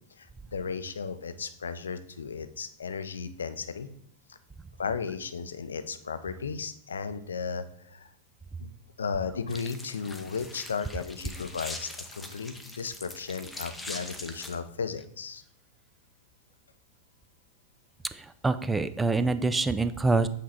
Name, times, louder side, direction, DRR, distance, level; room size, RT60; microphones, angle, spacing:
voice 1, 0.2-3.9 4.3-4.4 4.8-8.1 8.6-8.7 9.0-15.4, left 5 dB, 75° left, 11 dB, 0.5 m, -35 dB
sound 1, 9.5-14.5, left 2 dB, 10° left, 0.8 m, -42 dB
voice 2, 18.1-20.3, right 3 dB, 10° right, 13 dB, 0.4 m, -26 dB
7.8 x 3.0 x 4.2 m, 0.69 s
figure-of-eight pair, 95°, 0 cm